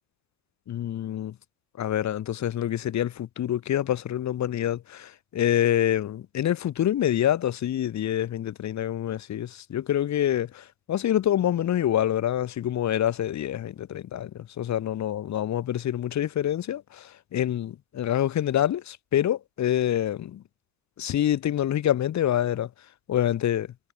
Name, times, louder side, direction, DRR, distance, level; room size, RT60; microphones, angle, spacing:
voice 1, 0.7-1.3 1.8-10.5 10.9-14.3 14.6-16.8 17.3-20.4 21.0-22.7 23.1-23.7, left 11 dB, 35° left, 2.6 m, -26 dB
supercardioid pair, 110°, 46 cm